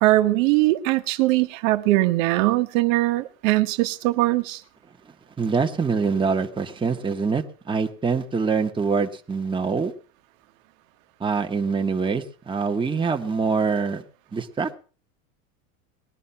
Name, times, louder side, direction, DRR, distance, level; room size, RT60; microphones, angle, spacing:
voice 1, 0.0-4.6, right 17 dB, 70° right, 1.4 m, -21 dB
voice 2, 5.4-9.9 11.2-14.0 14.3-14.8, right 5 dB, 10° right, 1.5 m, -24 dB
19.5 x 11.0 x 5.8 m
supercardioid pair, 130°, 42 cm